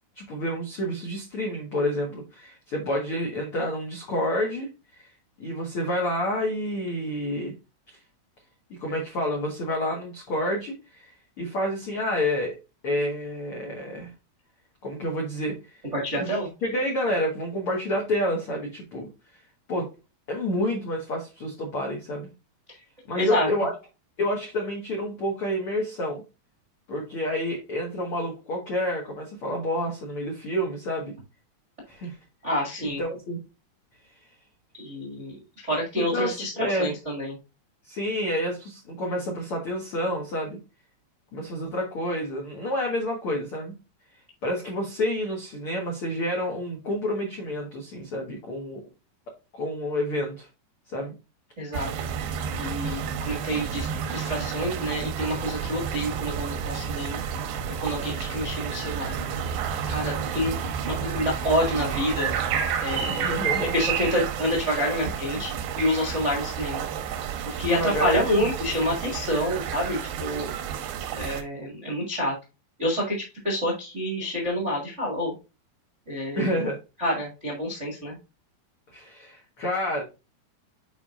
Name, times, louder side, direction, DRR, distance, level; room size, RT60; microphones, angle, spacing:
voice 1, 0.1-4.7 5.0-5.1 5.4-7.5 8.8-12.6 12.8-14.1 14.8-15.8 16.2-16.3 16.6-19.4 19.7-19.9 20.3-22.3 23.1-23.7 24.2-26.2 26.9-31.1 31.9-32.2 33.0-33.4 36.0-36.9 37.8-40.6 41.3-43.7 44.4-48.8 49.5-50.5 50.9-51.1 63.1-63.7 67.6-68.3 76.3-76.8 78.9-80.0, left 1 dB, 65° left, 0 dB, 1.3 m, -29 dB
voice 2, 15.9-16.5 23.1-23.5 32.4-33.0 34.8-35.4 35.7-37.4 51.6-51.9 52.5-57.2 57.8-59.2 59.9-60.6 60.8-62.3 62.8-63.4 63.7-66.9 67.4-70.5 71.1-72.3 72.8-75.3 76.1-76.5 77.0-78.1, equal, 40° right, -1 dB, 0.9 m, -28 dB
sound 1, 51.7-71.4, right 7 dB, 80° right, 3.1 m, -30 dB
8.3 x 5.1 x 2.5 m, 0.28 s
omnidirectional pair, 4.9 m